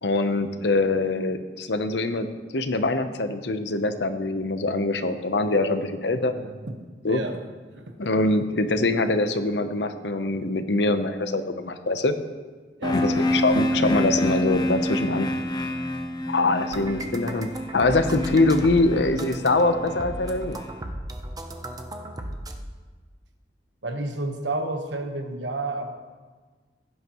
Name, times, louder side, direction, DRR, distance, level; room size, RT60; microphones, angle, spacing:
voice 1, 0.0-2.3 2.5-6.3 7.0-7.2 8.0-12.1 12.9-15.3 16.3-20.6, left 2 dB, 70° left, 9 dB, 0.8 m, -23 dB
voice 2, 6.3-6.7 7.1-7.4 7.7-8.1 12.8-13.2 16.6-16.8 21.5-21.6 23.8-25.9, right 2 dB, 85° right, 5 dB, 1.2 m, -31 dB
sound 1, 12.8-20.6, left 1 dB, 25° left, 0.7 m, -28 dB
sound 2, 16.7-22.5, right 1 dB, 20° right, 0.7 m, -36 dB
16.5 x 9.6 x 3.1 m, 1.4 s
head